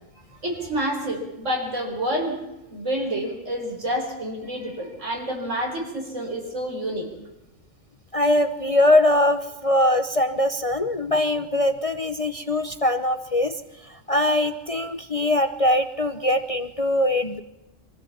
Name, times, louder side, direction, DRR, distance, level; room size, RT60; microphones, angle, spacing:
voice 1, 0.4-2.4 2.7-7.1, equal, 70° right, 1 dB, 5.0 m, -28 dB
voice 2, 8.1-13.6 13.8-17.4, left 1 dB, 30° left, 8 dB, 0.8 m, -22 dB
23.5 x 15.5 x 7.3 m, 0.99 s
omnidirectional pair, 1.3 m